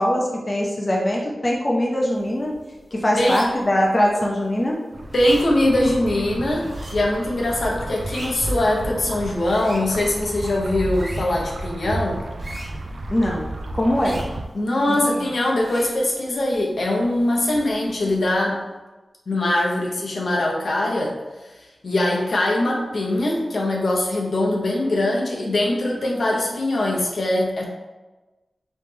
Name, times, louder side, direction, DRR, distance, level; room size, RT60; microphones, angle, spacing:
voice 1, 0.0-2.6 2.9-4.8 13.1-14.2 14.9-15.3, left 1 dB, 30° left, -2 dB, 0.6 m, -22 dB
sound 1, 2.1-18.5, right 1 dB, 40° right, 1.2 m, -44 dB
sound 2, 4.9-14.4, right 2 dB, 70° right, 0.4 m, -32 dB
voice 2, 5.1-12.2 14.0-14.2 14.5-18.6 19.3-21.1 21.4-21.5 21.8-27.6, left 1 dB, 70° left, -2 dB, 0.8 m, -22 dB
3.2 x 3.1 x 3.4 m, 1.1 s
wide cardioid pair, 75°, 0 cm